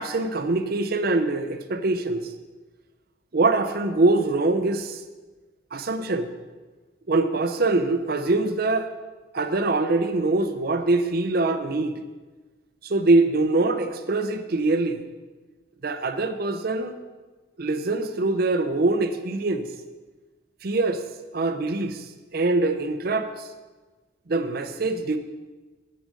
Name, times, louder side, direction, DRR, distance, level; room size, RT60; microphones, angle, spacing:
voice 1, 0.0-2.2 3.3-5.0 5.7-6.3 7.1-8.9 9.3-12.0 12.8-15.0 15.8-16.9 17.6-19.7 20.6-21.0 21.3-22.1 22.3-23.5 24.3-25.2, right 2 dB, 50° right, 9 dB, 0.6 m, -23 dB
7.8 x 6.3 x 5.0 m, 1.3 s
head